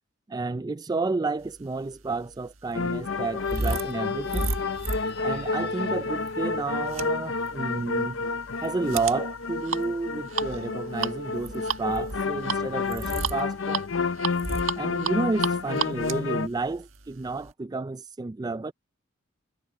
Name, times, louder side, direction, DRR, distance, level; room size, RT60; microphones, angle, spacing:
voice 1, 0.3-4.5 5.2-8.2 8.6-13.8 14.8-18.7, right 3 dB, 20° right, 0.4 m, -31 dB
sound 1, 1.8-17.5, right 4 dB, 75° right, 1.7 m, -34 dB
sound 2, 2.7-16.5, left 4 dB, 70° left, 0.8 m, -30 dB
sound 3, 3.4-7.8, left 8 dB, 55° left, 1.7 m, -51 dB
head